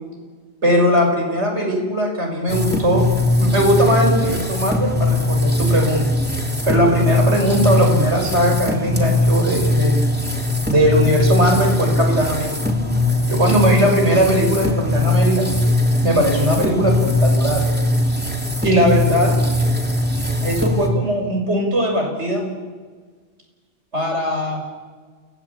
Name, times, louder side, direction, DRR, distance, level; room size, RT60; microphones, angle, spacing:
voice 1, 0.6-3.0 3.4-6.1 6.7-10.1 10.7-12.7 13.3-15.5 16.0-17.6 18.6-19.4 20.4-22.5 23.9-24.6, equal, 90° right, 1 dB, 6.6 m, -19 dB
sound 1, 2.5-20.9, left 1 dB, 10° right, 3.0 m, -20 dB
29.0 x 19.5 x 8.7 m, 1.5 s
omnidirectional pair, 1.1 m